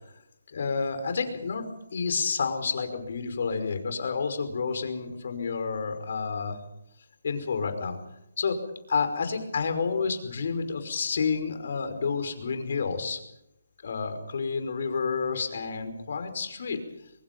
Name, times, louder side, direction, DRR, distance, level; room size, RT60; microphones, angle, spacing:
voice 1, 0.5-6.6 7.2-8.0 8.4-8.6 8.9-13.2 13.8-16.8, left 5 dB, 55° left, 8 dB, 5.4 m, -29 dB
24.0 x 22.5 x 5.5 m, 0.82 s
hypercardioid pair, 160°, 0 cm